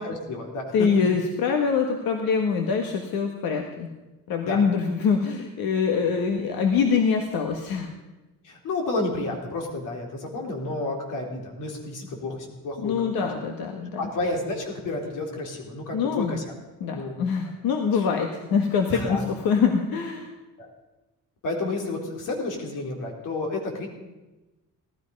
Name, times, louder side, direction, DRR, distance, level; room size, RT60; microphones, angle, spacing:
voice 1, 0.0-0.7 4.5-4.6 8.4-13.3 13.7-16.4 16.9-17.2 17.9-18.1 18.9-19.2 20.6-20.7 21.4-23.9, left 2 dB, 60° left, 1 dB, 3.7 m, -31 dB
voice 2, 0.7-3.9 4.3-7.9 12.8-14.1 15.9-16.4 16.8-20.3, left 6 dB, 85° left, 4 dB, 1.5 m, -24 dB
18.0 x 13.0 x 5.4 m, 1.1 s
cardioid pair, 165°, 35 cm